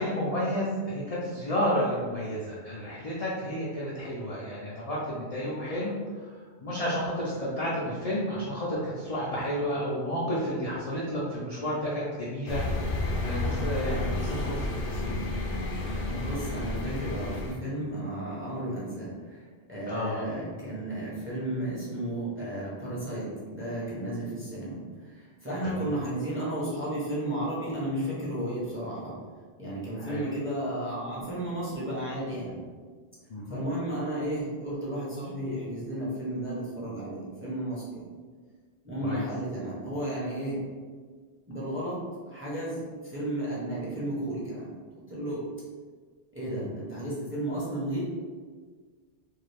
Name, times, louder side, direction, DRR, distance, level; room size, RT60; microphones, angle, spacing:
voice 1, 0.0-5.9 6.6-12.6 13.2-15.3 19.9-20.3 25.7-25.9 30.0-30.2 33.3-33.6 39.0-39.2 46.5-46.7, equal, 50° left, -7 dB, 0.5 m, -31 dB
sound 1, 12.5-17.5, left 2 dB, 70° left, 0.9 m, -31 dB
voice 2, 16.1-29.1 29.6-32.5 33.5-38.0 38.8-40.6 41.5-42.0 42.3-44.7 45.1-45.4 46.3-48.0, right 1 dB, 15° right, -8 dB, 0.7 m, -33 dB
2.6 x 2.4 x 3.3 m, 1.6 s
omnidirectional pair, 1.2 m